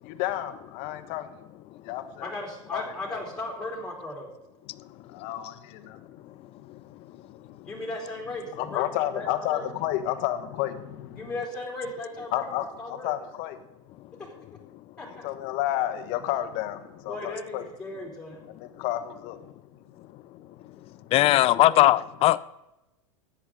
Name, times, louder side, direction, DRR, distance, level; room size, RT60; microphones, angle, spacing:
voice 1, 0.0-1.3 1.8-2.3 2.7-2.8 3.1-3.2 4.8-7.6 8.5-11.3 12.3-13.6 15.2-17.7 18.6-19.4 20.4-20.9, left 13 dB, 55° left, 1.4 m, -32 dB
voice 2, 2.2-4.3 7.6-8.8 9.1-9.6 11.2-12.4 12.8-13.1 15.0-15.2 17.1-18.4 21.1-21.9, left 2 dB, 5° left, 3.4 m, -36 dB
voice 3, 21.1-22.4, left 15 dB, 35° left, 0.4 m, -19 dB
14.0 x 10.0 x 3.8 m
hypercardioid pair, 110°, 17 cm